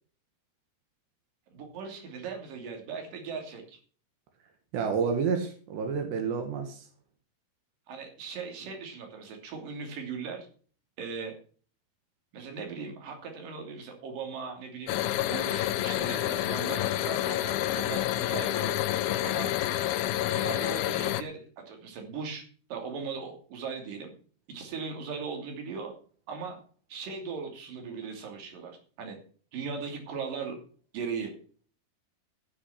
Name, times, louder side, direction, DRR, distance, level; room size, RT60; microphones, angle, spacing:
voice 1, 1.5-3.8 7.9-10.5 11.0-11.3 12.3-18.7 19.2-19.5 20.3-22.4 22.7-24.1 24.5-25.9 26.3-26.6 26.9-29.2 29.5-30.6 30.9-31.3, right 5 dB, 55° right, 3 dB, 4.3 m, -38 dB
voice 2, 4.7-6.8, right 5 dB, 85° right, 4 dB, 3.8 m, -29 dB
sound 1, 14.9-21.2, left 13 dB, 80° left, 2.4 m, -28 dB
14.5 x 6.5 x 5.9 m, 0.42 s
omnidirectional pair, 4.8 m